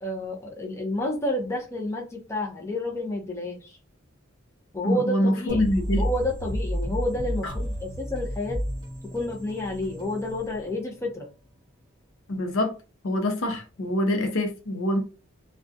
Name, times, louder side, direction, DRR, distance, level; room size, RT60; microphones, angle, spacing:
voice 1, 0.0-3.8 4.7-5.7 6.0-8.6 9.1-11.3, left 1 dB, 15° left, 0.5 m, -30 dB
voice 2, 4.8-6.0 7.4-7.5 12.3-12.7 13.0-15.0, left 1 dB, 80° left, 0.6 m, -25 dB
sound 1, 5.5-11.1, equal, 25° right, 1.1 m, -32 dB
2.4 x 2.2 x 2.6 m
head